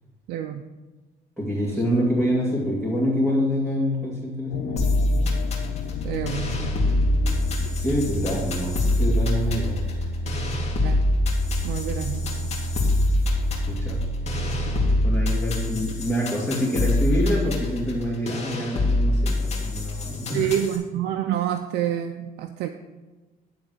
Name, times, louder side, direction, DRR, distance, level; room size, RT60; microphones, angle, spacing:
voice 1, 0.3-0.6 6.0-6.5 10.8-11.0 11.6-12.3 14.7-14.9 20.3-22.7, right 10 dB, 80° right, 6 dB, 0.5 m, -27 dB
voice 2, 1.4-5.0 7.8-9.8 13.7-14.0 15.0-20.5, equal, ahead, -8 dB, 2.6 m, -26 dB
sound 1, 4.5-9.6, left 8 dB, 65° left, 0.9 m, -36 dB
sound 2, 4.8-20.8, left 2 dB, 40° left, 2.3 m, -25 dB
sound 3, 6.0-14.9, right 1 dB, 55° right, 1.1 m, -30 dB
11.0 x 4.0 x 7.7 m, 1.2 s
cardioid pair, 110°, 17 cm